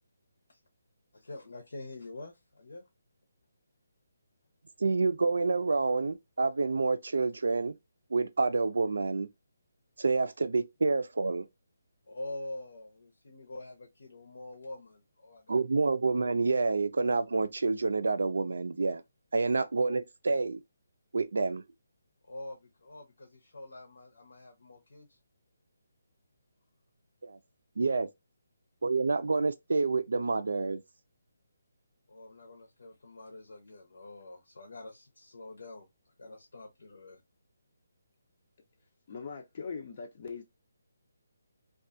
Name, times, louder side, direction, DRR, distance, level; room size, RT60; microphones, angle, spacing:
voice 1, 1.1-2.9 12.1-15.6 22.2-25.2 32.1-35.9 36.2-37.2, left 2 dB, 80° left, 0.7 m, -46 dB
voice 2, 4.8-7.8 8.1-9.3 10.0-11.5 15.5-19.0 19.3-20.6 21.1-21.6 27.2-27.4 27.8-28.1 28.8-30.8, right 3 dB, 75° right, 0.4 m, -28 dB
voice 3, 39.1-40.4, left 5 dB, 35° left, 0.4 m, -40 dB
2.5 x 2.3 x 2.5 m
hypercardioid pair, 170°, 0 cm